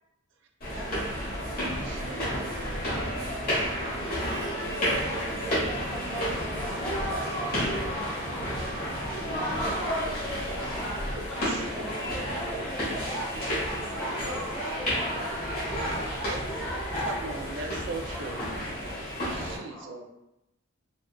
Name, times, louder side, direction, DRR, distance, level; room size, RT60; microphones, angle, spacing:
sound 1, 0.6-19.6, equal, 45° left, 1.2 m, -31 dB
voice 1, 0.7-2.2 2.8-4.0 10.8-11.0 11.3-11.6 13.1-13.3 13.7-14.6 15.1-15.4 15.8-16.2 18.5-19.0, left 1 dB, 75° left, -2 dB, 0.8 m, -43 dB
voice 2, 1.8-2.3 10.6-10.8 11.5-11.8 16.2-16.4 17.0-18.4 19.3-20.1, right 3 dB, 55° right, 2 dB, 0.4 m, -39 dB
voice 3, 4.8-10.0 10.5-11.0 11.4-15.5 18.1-18.6 19.5-20.0, right 1 dB, 10° left, -5 dB, 0.6 m, -41 dB
Bowed string instrument, 5.1-10.0, right 3 dB, 70° right, 0.8 m, -47 dB
Bowed string instrument 2, 11.3-18.1, equal, 30° right, 1.0 m, -49 dB
3.5 x 2.4 x 2.3 m, 0.89 s
head